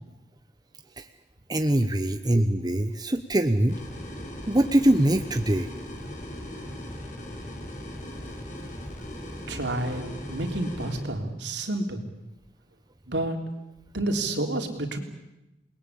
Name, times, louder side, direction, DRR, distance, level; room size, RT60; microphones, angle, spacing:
voice 1, 1.5-3.8 4.5-5.7, right 1 dB, 20° right, 8 dB, 0.9 m, -23 dB
sound 1, 3.7-11.0, equal, 45° left, 4.9 m, -38 dB
voice 2, 9.5-12.0 13.1-13.4 13.9-15.0, right 2 dB, 70° right, 4 dB, 3.6 m, -29 dB
29.0 x 21.0 x 8.5 m, 0.93 s
head